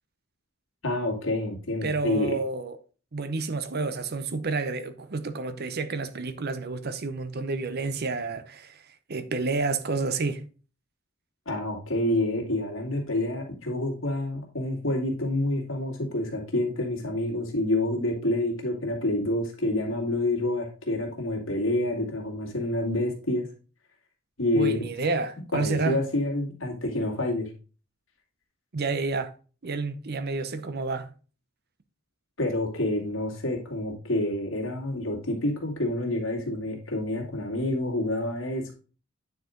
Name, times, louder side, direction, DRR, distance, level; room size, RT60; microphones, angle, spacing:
voice 1, 0.8-2.4 11.5-23.5 24.4-24.8 25.5-27.5 32.4-38.7, left 1 dB, 70° left, 2.3 m, -28 dB
voice 2, 1.8-2.8 3.1-8.8 9.1-10.5 24.5-26.0 28.7-29.3 29.6-31.1, right 3 dB, 50° right, 0.7 m, -30 dB
9.3 x 4.7 x 3.7 m
head